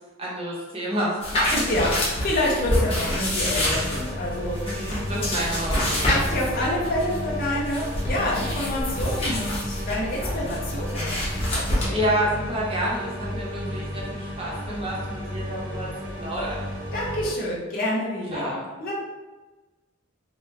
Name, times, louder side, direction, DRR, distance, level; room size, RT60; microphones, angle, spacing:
voice 1, 0.2-1.2 4.6-6.1 11.9-15.9 16.2-16.6 18.3-18.6, right 1 dB, 30° right, -5 dB, 0.8 m, -29 dB
sound 1, 1.2-11.9, equal, 30° left, 0.9 m, -27 dB
voice 2, 1.5-4.6 5.2-5.3 6.1-11.2 11.5-12.0 16.9-18.9, left 1 dB, 50° left, -5 dB, 0.6 m, -27 dB
sound 2, 3.4-17.3, equal, 70° right, 1.3 m, -33 dB
3.0 x 2.3 x 3.1 m, 1.2 s
head